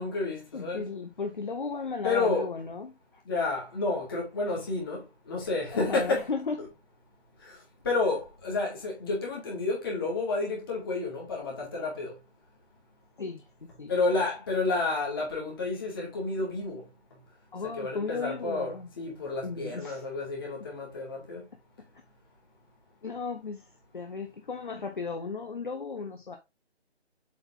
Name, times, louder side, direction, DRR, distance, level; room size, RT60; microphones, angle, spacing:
voice 1, 0.0-0.9 2.0-2.5 3.3-6.2 7.5-7.6 7.8-12.1 13.9-16.8 17.8-21.4, left 3 dB, 20° left, 2.4 m, -30 dB
voice 2, 0.5-3.2 5.7-6.6 13.2-13.9 17.5-18.9 19.4-20.0 23.0-23.7 23.9-26.4, left 4 dB, 45° left, 0.8 m, -35 dB
7.7 x 4.0 x 3.7 m
figure-of-eight pair, 165°, 34 cm